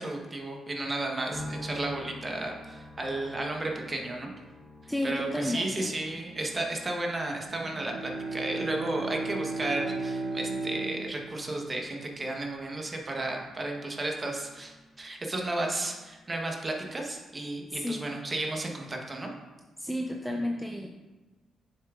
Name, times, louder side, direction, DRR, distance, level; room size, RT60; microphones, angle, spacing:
voice 1, 0.0-4.3 4.8-19.3, right 2 dB, 25° right, 1 dB, 1.0 m, -33 dB
sound 1, 1.3-16.6 16.8-17.7, left 1 dB, 20° left, 0.9 m, -49 dB
voice 2, 4.9-5.9 17.7-18.1 19.8-20.9, left 1 dB, ahead, 2 dB, 0.4 m, -32 dB
Bowed string instrument, 7.5-12.2, right 3 dB, 70° right, 0.8 m, -35 dB
7.2 x 6.5 x 2.4 m, 1.2 s
cardioid pair, 115°, 0 cm